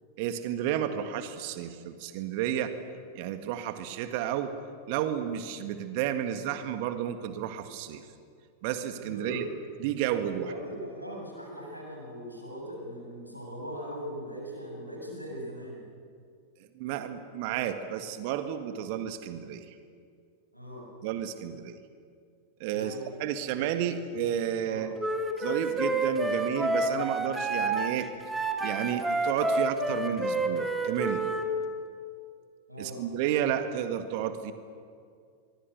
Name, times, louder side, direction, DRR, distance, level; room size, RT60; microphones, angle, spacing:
voice 1, 0.2-2.7 3.1-4.5 4.9-8.1 8.6-9.4 9.8-10.5 16.7-19.7 21.0-21.7 22.6-25.0 25.4-28.1 28.6-31.2 32.8-34.5, right 10 dB, 45° right, 9 dB, 1.7 m, -31 dB
voice 2, 9.0-9.4 10.2-15.8 20.5-20.9 22.7-23.1 24.6-24.8 32.7-33.0, equal, 90° left, -2 dB, 7.1 m, -40 dB
Wind instrument woodwind instrument, 25.0-31.5, right 2 dB, 10° right, 2.3 m, -29 dB
25.0 x 23.0 x 6.8 m, 2.2 s
figure-of-eight pair, 90°, 0 cm